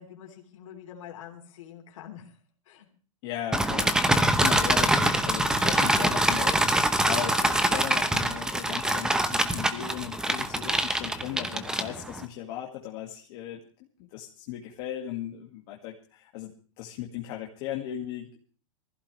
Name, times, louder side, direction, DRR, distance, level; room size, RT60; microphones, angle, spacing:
voice 1, 0.0-2.3 2.7-2.9, left 9 dB, 70° left, 1 dB, 3.5 m, -45 dB
voice 2, 3.2-13.6 14.1-18.4, left 11 dB, 45° left, 0 dB, 2.0 m, -37 dB
sound 1, 3.5-12.2, right 1 dB, 5° right, 0.9 m, -24 dB
21.5 x 15.5 x 3.3 m, 0.41 s
supercardioid pair, 150°, 17 cm